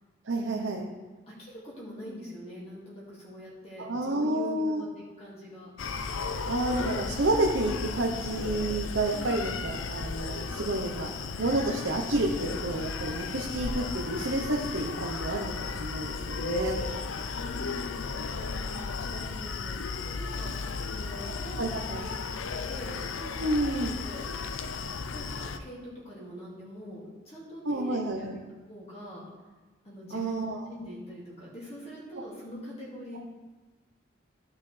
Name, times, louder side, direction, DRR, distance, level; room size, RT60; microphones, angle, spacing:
voice 1, 0.2-0.8 3.8-4.8 6.5-11.1 11.4-16.8 21.1-21.2 21.6-22.0 23.4-23.9 27.6-28.4 30.1-30.7, right 2 dB, 70° right, 0 dB, 0.8 m, -30 dB
voice 2, 1.3-5.7 9.1-9.5 17.3-23.6 24.0-24.3 25.1-28.4 28.7-29.2 29.8-30.4 30.7-33.2, equal, 30° left, -6 dB, 2.2 m, -44 dB
Screaming, 5.8-25.6, left 4 dB, 75° left, 0.5 m, -35 dB
13.5 x 5.7 x 3.3 m, 1.3 s
head